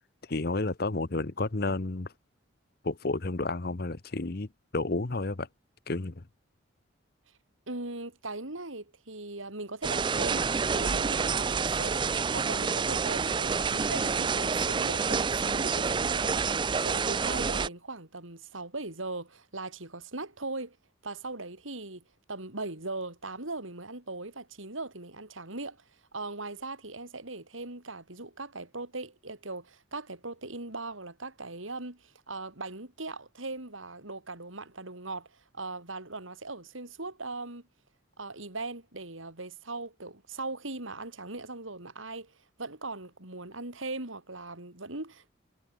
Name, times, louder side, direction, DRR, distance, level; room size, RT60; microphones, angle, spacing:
voice 1, 0.3-2.1 2.8-5.5 5.9-6.3, left 2 dB, 50° left, 1.0 m, -31 dB
voice 2, 7.7-20.8 21.0-22.0 22.3-37.7 38.2-45.3, right 2 dB, 85° right, 4.5 m, -39 dB
sound 1, 9.8-17.7, right 5 dB, 25° right, 0.4 m, -28 dB
head